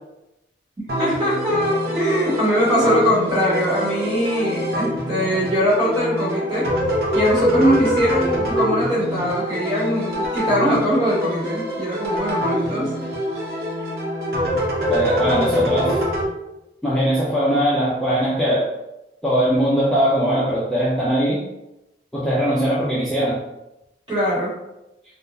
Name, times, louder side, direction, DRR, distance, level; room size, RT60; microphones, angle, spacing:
sound 1, 0.9-16.2, equal, 60° right, 0.6 m, -25 dB
voice 1, 1.0-6.7 7.1-12.9 24.1-24.5, equal, 25° right, -8 dB, 1.3 m, -21 dB
voice 2, 14.9-16.0 16.8-18.6 19.2-21.4 22.1-23.4, equal, 5° left, -9 dB, 0.5 m, -20 dB
3.6 x 2.2 x 2.6 m, 0.93 s
head